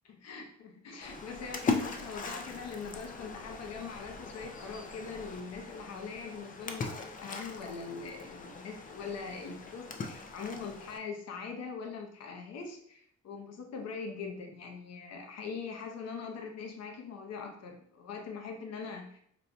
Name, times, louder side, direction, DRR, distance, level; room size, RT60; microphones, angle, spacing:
voice 1, 0.0-19.2, left 5 dB, 60° left, 3 dB, 0.7 m, -42 dB
Splash splatter, 1.0-11.0, left 4 dB, 30° left, 0.4 m, -39 dB
4.2 x 2.2 x 2.6 m, 0.67 s
cardioid pair, 90°, 30 cm